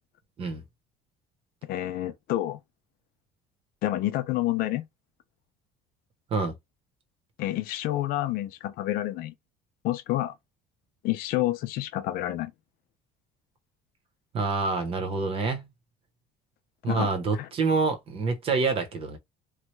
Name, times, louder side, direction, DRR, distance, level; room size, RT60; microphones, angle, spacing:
voice 1, 1.6-2.6 3.8-4.9 7.4-9.3 9.8-10.3 11.0-12.5 16.9-17.5, left 15 dB, 60° left, 0.5 m, -29 dB
voice 2, 14.3-15.7 16.8-19.2, right 4 dB, 35° right, 0.9 m, -27 dB
3.1 x 2.3 x 3.1 m
cardioid pair, 160°, 17 cm